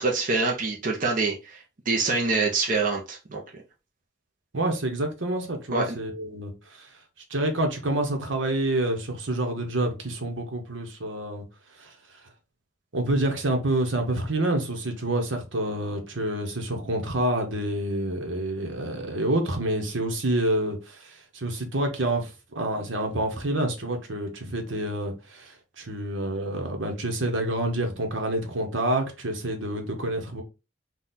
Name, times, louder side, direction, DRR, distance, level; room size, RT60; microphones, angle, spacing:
voice 1, 0.0-1.6 1.9-3.4 5.7-6.0, right 3 dB, 45° right, 0.8 m, -25 dB
voice 2, 4.5-6.9 7.3-11.4 11.8-11.9 12.9-30.4, right 1 dB, 80° right, 1.1 m, -28 dB
4.0 x 2.4 x 4.0 m
head